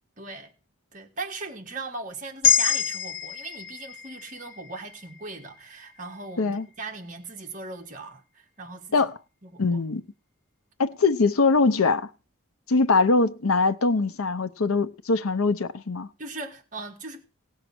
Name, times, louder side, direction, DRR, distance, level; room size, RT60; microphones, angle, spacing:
voice 1, 0.2-0.5 0.9-8.2 8.6-9.1 9.4-9.8 16.2-17.2, right 3 dB, 35° right, 1.6 m, -39 dB
sound 1, 2.4-6.7, left 7 dB, 60° left, 0.9 m, -27 dB
voice 2, 9.6-10.0 10.8-12.1 12.7-16.1, left 3 dB, 85° left, 0.7 m, -22 dB
17.5 x 6.5 x 6.0 m
head